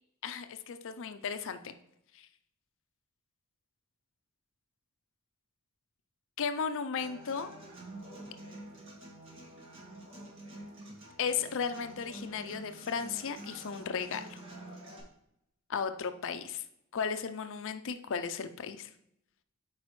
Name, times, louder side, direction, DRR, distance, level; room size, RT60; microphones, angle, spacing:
voice 1, 0.2-1.7 2.1-2.3 6.4-7.5 11.2-14.4 15.7-16.6 16.9-18.9, left 6 dB, 60° left, 10 dB, 0.5 m, -35 dB
Human voice / Acoustic guitar, 7.0-15.0, right 1 dB, 60° right, 1.8 m, -48 dB
7.4 x 4.8 x 3.1 m, 0.77 s
head